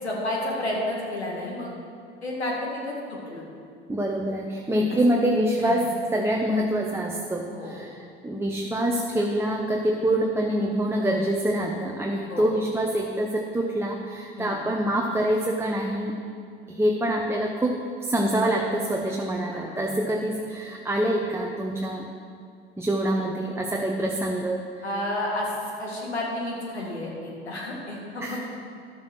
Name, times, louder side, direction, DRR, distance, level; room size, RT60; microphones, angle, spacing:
voice 1, 0.0-1.7 2.2-3.4 5.6-5.8 7.5-7.7 12.1-12.5 14.4-14.6 19.5-19.9 24.8-28.4, left 1 dB, 90° left, -3 dB, 2.3 m, -31 dB
voice 2, 3.9-16.2 16.7-22.1 22.8-24.8 28.2-28.4, right 1 dB, 10° right, 0 dB, 1.0 m, -25 dB
12.0 x 7.2 x 6.2 m, 2.3 s
hypercardioid pair, 70°, 32 cm